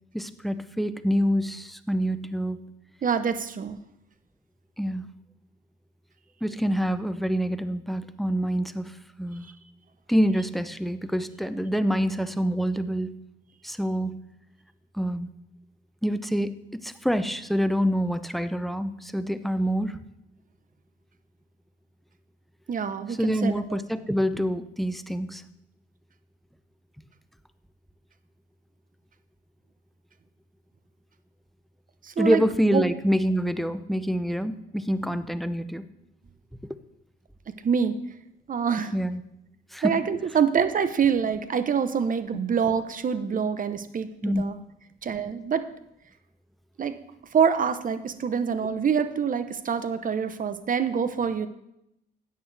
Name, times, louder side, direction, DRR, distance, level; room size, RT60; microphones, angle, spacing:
voice 1, 0.1-2.7 4.8-5.1 6.4-9.5 10.1-13.2 13.6-14.2 14.9-15.3 16.0-20.0 23.2-25.4 32.2-35.8 38.9-39.2 39.7-40.0 44.2-44.4, equal, ahead, 12 dB, 0.6 m, -26 dB
voice 2, 3.0-3.8 22.7-23.8 32.0-32.4 32.7-32.9 37.6-37.9 38.5-38.9 39.8-44.6 45.0-45.6 46.8-47.0 47.3-51.5, right 7 dB, 45° right, 11 dB, 0.9 m, -25 dB
13.0 x 8.9 x 3.4 m, 0.82 s
cardioid pair, 90°, 20 cm